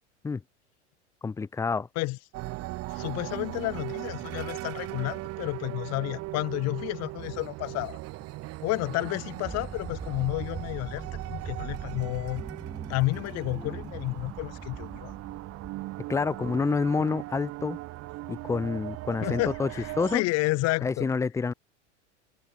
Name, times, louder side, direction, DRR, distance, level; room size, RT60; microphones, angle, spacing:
voice 1, 1.2-1.9 16.1-17.8 18.3-19.7 20.0-20.2 20.8-21.5, left 4 dB, 10° left, 0.5 m, -28 dB
sound 1, 2.3-20.2, right 19 dB, 45° right, 1.1 m, -38 dB
voice 2, 2.9-8.0 8.6-12.4 12.9-15.1 19.2-21.1, left 21 dB, 45° left, 1.1 m, -31 dB
sound 2, 9.4-16.2, right 4 dB, 10° right, 0.8 m, -42 dB
hypercardioid pair, 95°, 35 cm